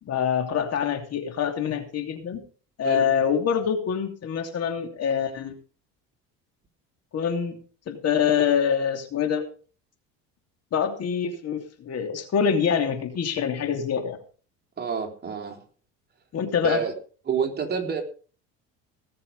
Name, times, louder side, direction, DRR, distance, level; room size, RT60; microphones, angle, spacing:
voice 1, 0.0-2.4 2.8-5.6 7.1-7.6 7.9-9.4 10.7-14.2 16.3-16.8, left 7 dB, 50° left, 6 dB, 3.0 m, -25 dB
voice 2, 14.8-15.6 16.6-16.9 17.3-18.0, right 6 dB, 30° right, 3 dB, 3.7 m, -28 dB
18.5 x 6.8 x 5.5 m, 0.40 s
supercardioid pair, 100°, 33 cm